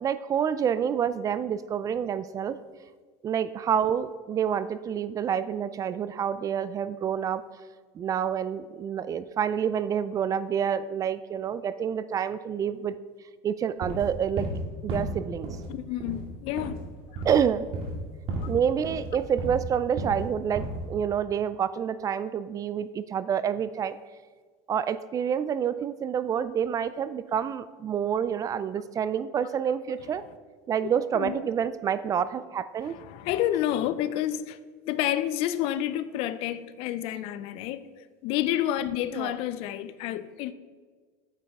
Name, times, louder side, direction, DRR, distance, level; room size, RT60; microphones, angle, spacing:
voice 1, 0.0-2.6 3.2-7.4 7.9-12.9 13.4-14.5 14.8-15.5 17.2-17.7 18.5-24.0 24.7-30.2 30.7-33.0 39.1-39.4, right 8 dB, 30° right, 0.4 m, -28 dB
sound 1, 13.8-14.6 14.9-15.7 16.0-16.3 16.6-16.8 17.2-17.4 17.7-18.0 18.3-18.5 18.8-19.6 20.0-20.2 20.5-20.9, right 2 dB, 60° right, 2.4 m, -33 dB
voice 2, 15.7-16.8 17.1-17.2 18.1-18.2 31.1-31.3 32.8-34.6 34.8-37.8 38.2-40.5, left 12 dB, 60° left, 0.5 m, -29 dB
8.9 x 8.1 x 3.6 m
supercardioid pair, 115°, 11 cm